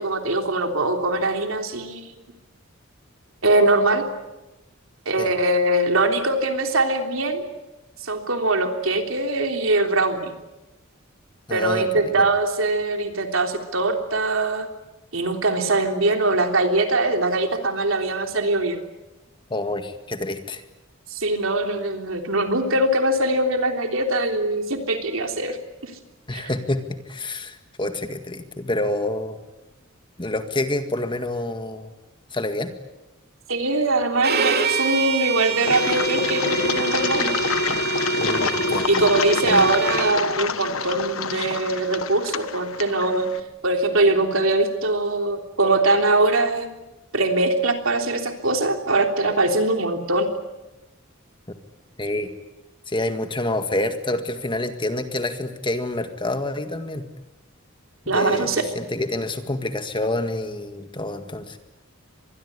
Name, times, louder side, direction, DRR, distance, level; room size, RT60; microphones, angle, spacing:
voice 1, 0.0-2.2 3.4-4.0 5.1-7.4 8.0-10.3 11.5-14.7 15.1-18.8 21.1-25.6 25.8-25.9 26.3-26.5 33.5-37.3 38.9-43.3 43.6-46.7 47.1-50.3 58.1-58.7, right 2 dB, 75° right, 5 dB, 3.4 m, -22 dB
voice 2, 11.5-11.9 12.2-12.3 19.5-20.6 26.3-29.4 30.2-31.9 32.3-32.7 38.2-39.0 39.4-39.6 52.0-52.3 52.9-57.1 58.1-61.6, left 1 dB, 25° left, 8 dB, 1.9 m, -27 dB
Bowed string instrument, 34.2-40.2, right 6 dB, 50° right, 2.8 m, -27 dB
Engine, 35.6-43.4, left 3 dB, 85° left, 1.3 m, -26 dB
25.5 x 21.0 x 9.8 m, 1.0 s
head